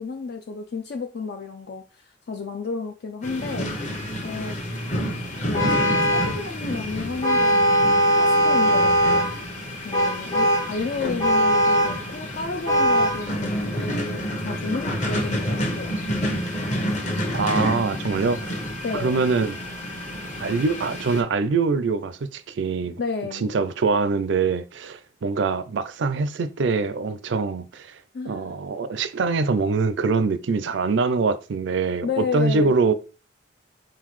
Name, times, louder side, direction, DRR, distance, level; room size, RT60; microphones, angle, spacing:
voice 1, 0.0-3.7 4.2-4.6 5.4-9.3 9.8-15.9 18.8-19.2 23.0-23.5 28.1-28.6 32.0-32.8, left 4 dB, 55° left, 0.4 m, -32 dB
sound 1, 3.2-21.2, equal, 40° left, 0.9 m, -29 dB
Vehicle horn car horn honking, 5.5-6.4 7.2-9.4 9.9-10.8 11.2-12.1 12.7-13.3, equal, 15° left, 0.6 m, -20 dB
voice 2, 17.3-18.6 18.9-19.6 20.4-23.0 23.3-28.0 28.2-32.9, right 4 dB, 75° right, 0.4 m, -24 dB
4.4 x 3.8 x 3.1 m
head